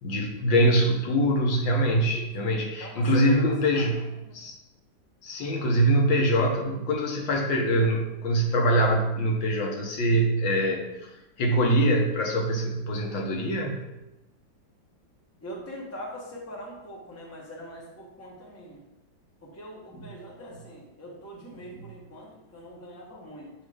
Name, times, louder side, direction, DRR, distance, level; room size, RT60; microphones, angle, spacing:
voice 1, 0.0-4.0 4.3-4.5 5.2-11.1 11.4-13.8, right 1 dB, 80° left, 1 dB, 1.7 m, -24 dB
voice 2, 2.8-3.9 4.2-4.4 15.4-18.8 19.4-23.5, equal, 10° left, -3 dB, 0.9 m, -42 dB
7.3 x 2.7 x 4.9 m, 0.96 s
omnidirectional pair, 2.1 m